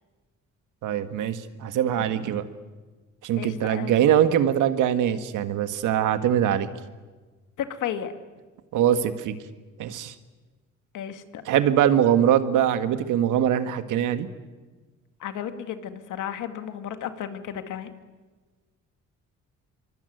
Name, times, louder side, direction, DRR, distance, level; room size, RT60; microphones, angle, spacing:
voice 1, 0.8-2.4 3.2-6.7 8.7-9.4 9.8-10.1 11.5-14.3, right 10 dB, 85° right, 9 dB, 1.8 m, -22 dB
voice 2, 3.4-4.0 7.6-8.1 10.9-11.4 15.2-17.9, left 9 dB, 85° left, 8 dB, 2.2 m, -33 dB
24.5 x 24.0 x 9.4 m, 1.3 s
cardioid pair, 90°, 30 cm